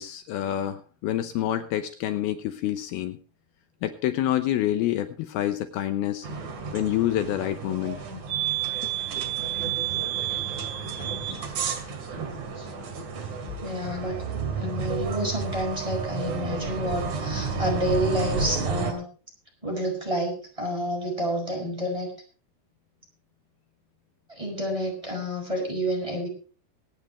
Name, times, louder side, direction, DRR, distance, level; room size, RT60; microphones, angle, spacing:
voice 1, 0.0-3.2 3.8-6.3 6.7-8.0 8.8-8.9, left 12 dB, 75° left, 9 dB, 2.7 m, -27 dB
sound 1, 6.2-18.9, right 6 dB, 50° right, 3.1 m, -31 dB
voice 2, 12.1-12.7 13.6-14.2 14.6-19.1 19.6-22.1 24.3-26.3, equal, 10° right, 0 dB, 5.6 m, -29 dB
24.0 x 9.3 x 3.3 m, 0.39 s
omnidirectional pair, 4.7 m